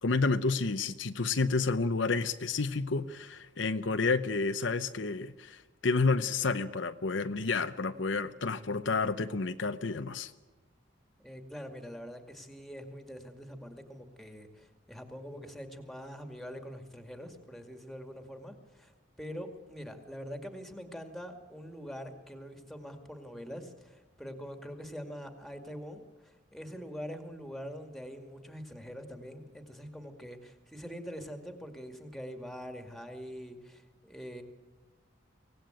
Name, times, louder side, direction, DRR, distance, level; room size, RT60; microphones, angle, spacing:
voice 1, 0.0-10.3, left 4 dB, 75° left, 10 dB, 0.8 m, -30 dB
voice 2, 11.2-18.9 19.2-34.4, equal, ahead, 6 dB, 2.2 m, -44 dB
24.0 x 18.0 x 9.1 m, 1.2 s
head